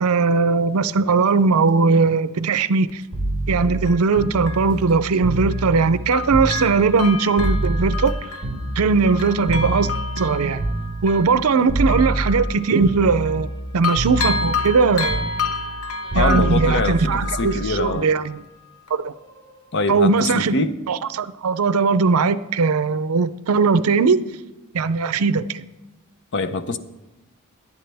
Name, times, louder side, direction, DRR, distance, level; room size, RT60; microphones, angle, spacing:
voice 1, 0.0-3.0 3.5-8.1 8.8-9.9 10.2-10.6 11.0-13.5 13.7-15.3 16.1-18.4 18.9-19.1 19.9-20.5 20.9-24.2 24.7-25.6, right 4 dB, 75° right, 0.5 m, -19 dB
Bell, 2.9-3.0 3.9-5.8 6.1-13.5 13.8-18.5 18.9-19.0, left 4 dB, 85° left, 1.0 m, -31 dB
sound 1, 3.1-7.1 7.4-11.4 11.7-12.5 12.8-13.7 13.9-17.9 19.2-19.4, right 1 dB, 30° left, 4.3 m, -26 dB
voice 2, 16.1-18.1 19.7-20.8 26.3-26.8, left 3 dB, 55° left, 0.7 m, -24 dB
18.0 x 11.0 x 3.4 m
head